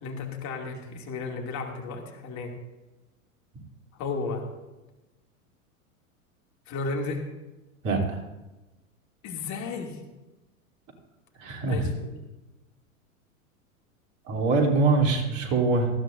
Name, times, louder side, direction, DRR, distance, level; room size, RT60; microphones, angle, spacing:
voice 1, 0.0-2.6 4.0-4.4 6.7-7.2 9.2-10.0 11.6-12.1, left 4 dB, 40° left, 2 dB, 2.7 m, -33 dB
voice 2, 7.8-8.2 11.4-11.9 14.3-15.9, right 3 dB, 45° right, 1 dB, 3.4 m, -23 dB
19.0 x 14.0 x 2.7 m, 1.1 s
hypercardioid pair, 95°, 42 cm